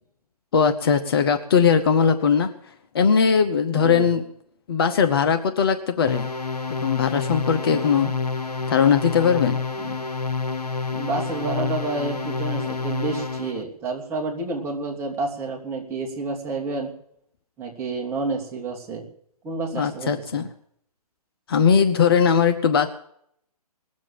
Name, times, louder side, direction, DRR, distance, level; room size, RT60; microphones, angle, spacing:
voice 1, 0.5-2.5 2.9-4.2 4.7-6.3 6.8-8.1 8.7-9.6 19.7-20.5 21.5-22.9, left 6 dB, 40° left, 8 dB, 0.9 m, -19 dB
voice 2, 3.7-4.1 9.8-10.0 10.9-16.9 17.6-19.1 19.4-20.4, right 3 dB, 15° right, -1 dB, 2.5 m, -29 dB
sound 1, 6.1-13.6, left 4 dB, 75° left, 1.2 m, -28 dB
19.5 x 7.5 x 9.1 m, 0.69 s
figure-of-eight pair, 135°, 20 cm